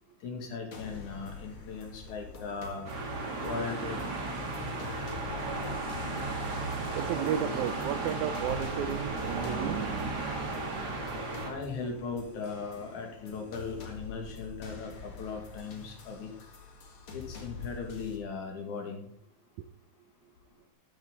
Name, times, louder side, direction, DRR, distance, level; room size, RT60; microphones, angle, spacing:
voice 1, 0.2-2.9 3.4-4.2 11.4-16.3 17.1-19.0, left 5 dB, 85° left, 3 dB, 3.8 m, -38 dB
sound 1, 0.7-18.2, left 4 dB, 50° left, 2.7 m, -47 dB
sound 2, 2.9-11.5, right 3 dB, 35° right, 2.6 m, -34 dB
voice 2, 6.9-9.8, right 10 dB, 85° right, 11 dB, 2.1 m, -33 dB
13.5 x 10.0 x 4.0 m, 0.66 s
omnidirectional pair, 3.3 m